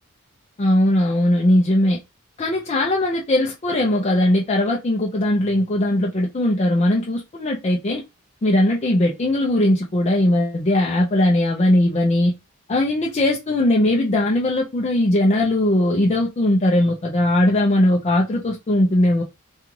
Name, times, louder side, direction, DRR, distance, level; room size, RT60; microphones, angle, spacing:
voice 1, 0.6-2.0 2.4-8.0 8.4-12.3 12.7-19.2, left 1 dB, 30° left, 0.5 m, -19 dB
3.1 x 2.4 x 3.6 m
head